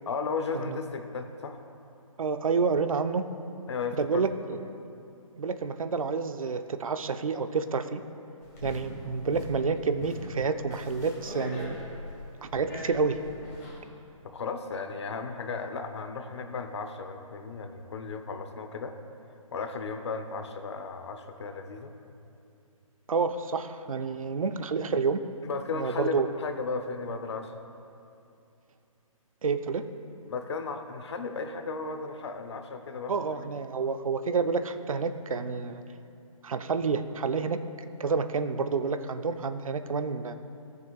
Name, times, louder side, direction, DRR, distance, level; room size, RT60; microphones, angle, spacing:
voice 1, 0.1-1.6 3.7-4.2 14.2-19.0 19.5-21.9 25.4-27.6 30.3-33.5, left 4 dB, 50° left, 7 dB, 0.8 m, -35 dB
voice 2, 2.2-3.3 3.9-4.6 5.4-8.0 8.6-11.7 12.4-13.2 23.1-25.2 25.7-26.3 29.4-29.9 33.1-35.8 36.4-37.6 38.0-40.3, right 5 dB, 70° right, 9 dB, 0.7 m, -29 dB
sound 1, 8.4-13.8, left 1 dB, 30° left, 2.1 m, -41 dB
18.0 x 6.7 x 2.4 m, 2.6 s
hypercardioid pair, 165°, 18 cm